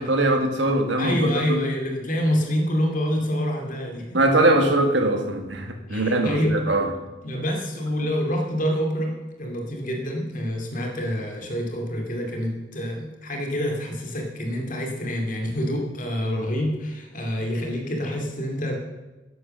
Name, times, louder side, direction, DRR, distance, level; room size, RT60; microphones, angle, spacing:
voice 1, 0.0-1.6 4.1-6.9, right 1 dB, 80° right, 4 dB, 1.6 m, -21 dB
voice 2, 1.0-4.2 5.9-6.6 7.2-9.1 9.4-18.8, equal, 45° left, 1 dB, 2.6 m, -27 dB
11.0 x 8.1 x 6.7 m, 1.1 s
head